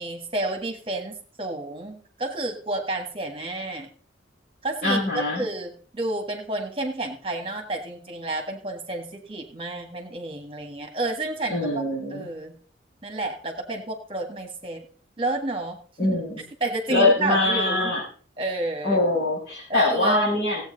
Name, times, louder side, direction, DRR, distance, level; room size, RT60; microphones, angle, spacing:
voice 1, 0.0-3.9 4.6-11.8 12.1-12.6 13.0-14.8 15.2-16.2 16.6-17.9 18.4-19.0 19.7-20.2, right 2 dB, 30° right, 4 dB, 1.6 m, -30 dB
voice 2, 4.8-5.4 11.5-12.3 16.0-16.4 16.9-18.0 18.8-20.6, left 2 dB, 55° left, -8 dB, 6.5 m, -23 dB
15.5 x 8.3 x 3.9 m, 0.43 s
head